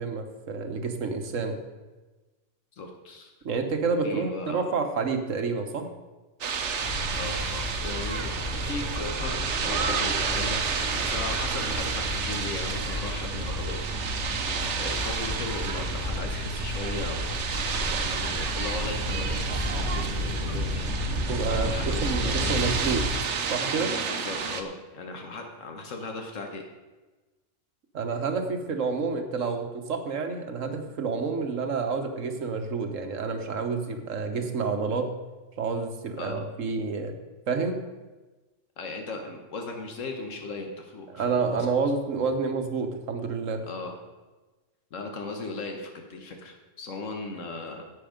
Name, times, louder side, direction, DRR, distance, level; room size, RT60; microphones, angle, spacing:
voice 1, 0.0-1.6 3.4-5.9 21.3-23.1 23.5-23.9 27.9-35.1 35.6-37.2 37.5-37.8 41.1-43.7, right 4 dB, 85° right, 6 dB, 1.5 m, -29 dB
voice 2, 2.8-3.3 4.0-4.6 7.1-8.3 8.6-10.6 11.0-13.8 14.2-14.3 14.7-17.4 18.0-20.8 21.5-22.5 24.1-26.6 36.2-36.4 38.8-41.7 43.6-44.0 44.9-47.9, left 3 dB, 90° left, 3 dB, 1.5 m, -37 dB
sound 1, 6.4-24.6, right 5 dB, 70° right, 1.2 m, -31 dB
sound 2, 6.8-23.1, left 1 dB, 55° left, 4.6 m, -32 dB
11.0 x 8.4 x 5.1 m, 1.2 s
omnidirectional pair, 1.3 m